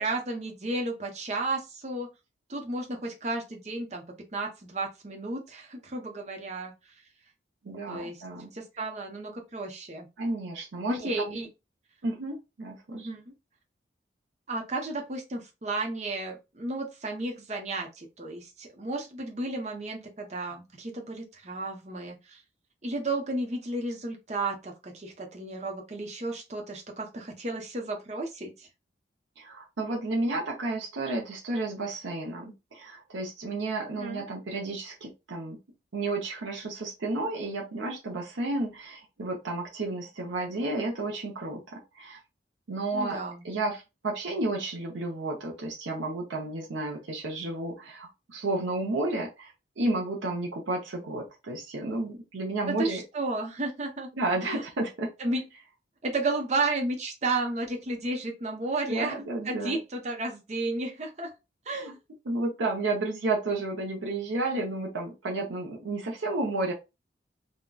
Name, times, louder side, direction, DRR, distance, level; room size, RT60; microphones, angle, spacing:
voice 1, 0.0-2.1 2.5-4.0 4.3-6.7 7.9-8.2 8.5-10.1 10.9-11.5 12.9-13.3 14.5-22.4 22.8-28.7 34.0-34.2 42.9-43.4 52.7-54.1 54.4-54.6 55.2-55.4 56.0-61.3 61.7-62.0, right 2 dB, 35° right, 0.7 m, -33 dB
voice 2, 7.6-8.5 10.2-11.4 12.0-13.1 29.4-35.6 35.9-42.2 42.7-53.0 54.2-55.1 58.9-59.8 61.7-61.9 62.3-66.7, right 2 dB, 85° right, 0.7 m, -32 dB
3.7 x 2.1 x 2.2 m
head